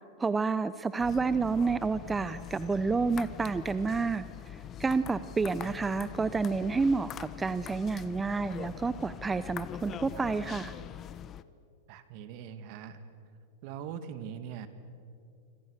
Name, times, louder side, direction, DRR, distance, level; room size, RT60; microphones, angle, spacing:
voice 1, 0.2-4.3 4.8-10.7, right 4 dB, 15° right, 14 dB, 0.7 m, -29 dB
sound 1, 1.0-11.4, left 10 dB, 30° left, 1.0 m, -43 dB
voice 2, 11.9-13.0 13.6-14.7, right 8 dB, 55° right, 10 dB, 2.3 m, -42 dB
27.0 x 26.0 x 6.7 m, 2.5 s
hypercardioid pair, 115°, 0 cm